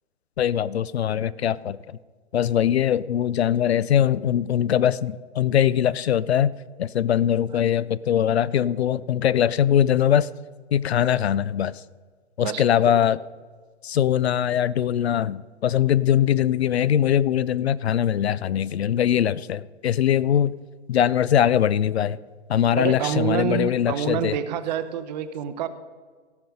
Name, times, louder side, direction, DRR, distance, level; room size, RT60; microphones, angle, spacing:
voice 1, 0.4-2.0 2.3-6.5 6.8-10.3 10.7-11.8 12.4-13.2 13.8-20.5 20.9-22.2 22.5-24.4, left 10 dB, 65° left, 19 dB, 0.5 m, -22 dB
voice 2, 12.4-12.9 22.8-25.7, right 9 dB, 40° right, 12 dB, 0.8 m, -27 dB
16.5 x 6.8 x 5.3 m, 1.5 s
figure-of-eight pair, 115°, 34 cm